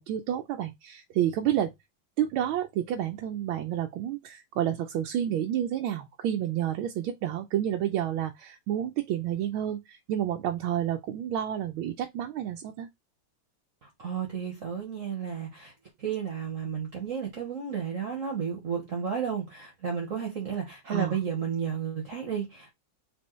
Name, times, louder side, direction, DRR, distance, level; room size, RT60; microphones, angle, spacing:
voice 1, 0.0-1.7 2.2-12.9 20.9-21.2, right 11 dB, 85° right, 1.4 m, -30 dB
voice 2, 13.8-15.7 16.0-22.7, right 7 dB, 45° right, 1.3 m, -32 dB
4.4 x 3.9 x 3.1 m
omnidirectional pair, 2.2 m